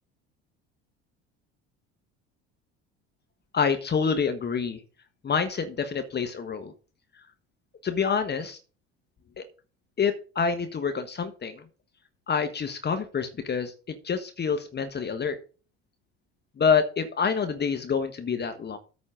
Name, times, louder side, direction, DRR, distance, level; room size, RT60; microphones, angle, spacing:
voice 1, 3.5-4.8 5.2-6.7 7.8-8.6 9.4-9.5 10.0-11.6 12.3-15.4 16.6-18.8, left 6 dB, 30° left, 8 dB, 1.3 m, -27 dB
8.8 x 4.2 x 7.3 m, 0.35 s
hypercardioid pair, 70°, 32 cm